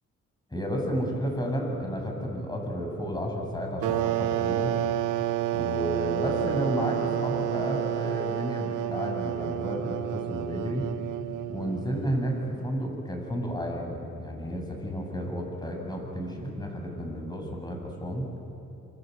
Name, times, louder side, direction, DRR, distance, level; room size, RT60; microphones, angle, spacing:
voice 1, 0.5-4.8 5.5-10.9 11.5-18.3, equal, 15° left, 1 dB, 7.5 m, -32 dB
sound 1, 3.8-12.2, right 13 dB, 85° right, 1.0 m, -29 dB
27.5 x 26.0 x 8.1 m, 2.9 s
cardioid pair, 90°, 30 cm